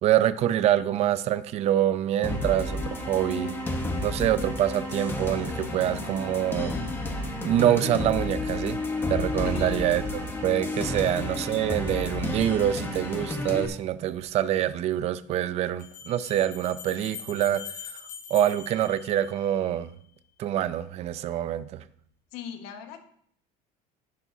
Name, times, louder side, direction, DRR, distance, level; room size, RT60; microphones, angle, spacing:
voice 1, 0.0-3.5 4.0-6.7 7.4-8.8 9.1-17.6 18.3-19.9 20.4-21.8, right 11 dB, 40° right, 13 dB, 0.5 m, -25 dB
sound 1, 2.2-13.7, left 2 dB, 10° left, 1.0 m, -31 dB
voice 2, 9.4-9.8 10.9-11.1 22.3-23.0, left 8 dB, 80° left, 6 dB, 1.5 m, -40 dB
Bell, 14.2-14.3 15.8-19.7, left 8 dB, 50° left, 4.9 m, -43 dB
11.0 x 10.5 x 2.7 m, 0.63 s
cardioid pair, 160°, 17 cm